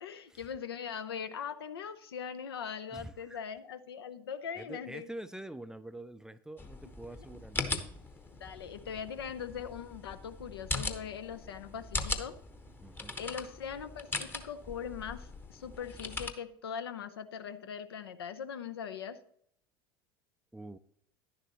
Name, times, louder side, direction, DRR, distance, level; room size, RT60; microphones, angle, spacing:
voice 1, 0.0-5.1 7.3-7.4 8.4-12.3 13.2-19.2, left 7 dB, 70° left, 11 dB, 0.7 m, -41 dB
voice 2, 2.9-3.4 4.6-7.7 12.8-13.2 20.5-20.8, right 1 dB, 5° right, 13 dB, 0.4 m, -45 dB
sound 1, 6.6-16.3, left 3 dB, 15° left, 1.0 m, -40 dB
11.0 x 10.5 x 3.0 m, 0.67 s
figure-of-eight pair, 70°, 13 cm